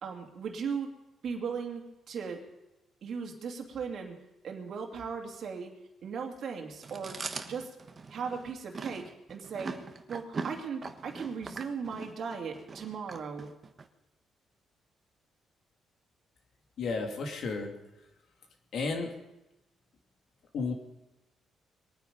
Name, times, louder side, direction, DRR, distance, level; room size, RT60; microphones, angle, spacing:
voice 1, 0.0-0.9 1.2-2.4 3.0-4.2 4.4-5.7 6.0-7.2 7.5-7.7 8.1-9.8 10.1-13.5, right 6 dB, 60° right, 2 dB, 2.6 m, -37 dB
Chewing mastication, 6.8-13.9, right 4 dB, 35° right, 1.2 m, -41 dB
voice 2, 16.8-17.7 18.7-19.1 20.5-20.7, left 4 dB, 65° left, 3 dB, 2.3 m, -32 dB
22.5 x 9.3 x 5.2 m, 0.95 s
cardioid pair, 90°, 0 cm